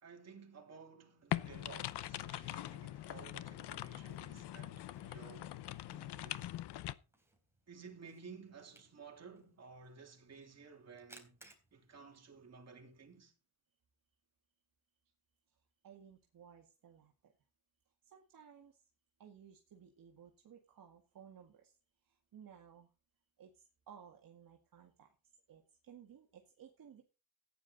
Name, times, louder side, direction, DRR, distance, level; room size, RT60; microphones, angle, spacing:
voice 1, 0.0-5.6 5.9-6.5 7.7-11.4 11.7-13.3, right 5 dB, 40° right, 3.5 m, -55 dB
Camera, 1.2-13.2, right 2 dB, 5° right, 3.9 m, -68 dB
sound 1, 1.3-6.9, left 13 dB, 80° left, 0.8 m, -42 dB
voice 2, 15.8-17.3 18.0-18.8 19.2-21.8 22.0-22.9 23.4-25.2 25.5-27.0, right 8 dB, 55° right, 2.1 m, -58 dB
14.5 x 10.0 x 4.1 m
cardioid pair, 135°, 39 cm